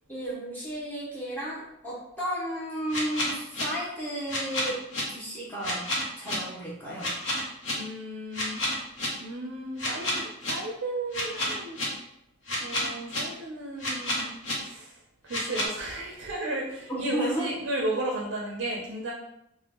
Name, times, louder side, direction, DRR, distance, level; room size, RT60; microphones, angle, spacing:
voice 1, 0.1-4.8 5.1-5.9 6.2-7.1 16.9-17.5, right 1 dB, 10° left, -7 dB, 0.7 m, -33 dB
sound 1, 2.9-3.6 4.3-5.0 5.6-6.3 7.0-7.7 8.3-9.1 9.8-10.5 11.1-11.8 12.5-13.2 13.8-14.5 15.3-15.7, left 1 dB, 70° left, 0.8 m, -29 dB
voice 2, 7.7-8.6 9.2-11.8 12.6-15.0 15.3-19.1, right 2 dB, 75° right, -2 dB, 0.5 m, -34 dB
3.4 x 2.1 x 2.9 m, 0.80 s
head